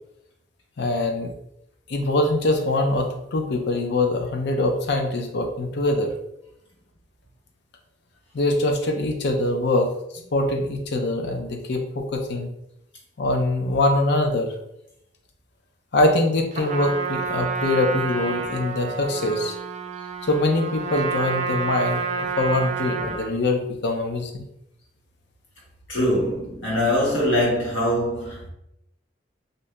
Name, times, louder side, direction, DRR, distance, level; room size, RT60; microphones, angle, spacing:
voice 1, 0.8-1.3 1.9-6.1 8.3-9.9 10.3-12.5 13.2-14.5 15.9-19.5 20.2-24.5, left 2 dB, 65° left, 0.5 m, -23 dB
Trumpet, 16.5-23.4, right 4 dB, 40° right, 0.4 m, -29 dB
voice 2, 25.9-28.5, left 1 dB, 80° left, 1.5 m, -23 dB
2.7 x 2.6 x 3.2 m
head